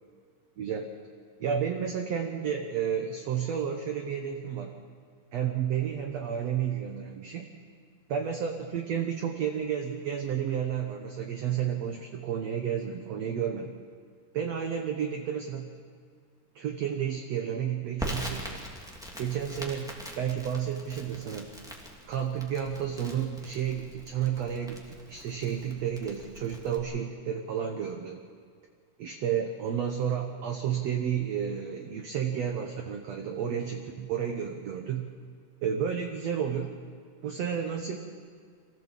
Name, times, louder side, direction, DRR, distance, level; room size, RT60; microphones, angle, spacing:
voice 1, 0.6-0.9 1.4-4.8 5.3-7.5 8.1-13.7 14.3-15.8 16.5-18.7 19.2-21.5 22.1-28.2 29.0-35.1 35.6-36.7 37.2-38.0, right 8 dB, 65° right, 3 dB, 1.7 m, -31 dB
Crackle, 18.0-26.8, equal, ahead, 1.7 m, -42 dB
24.0 x 15.5 x 7.6 m, 2.1 s
omnidirectional pair, 4.4 m